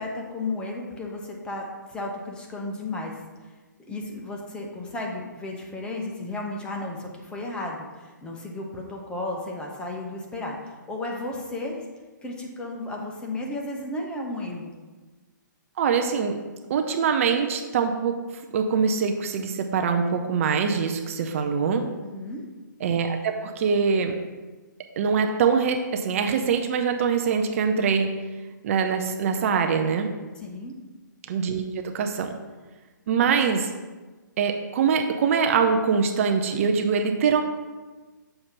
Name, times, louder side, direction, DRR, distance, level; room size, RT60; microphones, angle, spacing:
voice 1, 0.0-3.1 3.9-11.8 12.2-14.7 22.0-22.4 30.4-30.7, left 2 dB, 10° left, -1 dB, 0.7 m, -33 dB
voice 2, 15.8-16.4 16.7-18.2 18.5-21.8 22.8-24.2 25.0-28.1 28.6-30.1 31.3-32.3 33.1-33.7 34.4-37.4, right 6 dB, 45° right, 5 dB, 0.5 m, -23 dB
6.5 x 2.8 x 5.6 m, 1.3 s
hypercardioid pair, 140°, 11 cm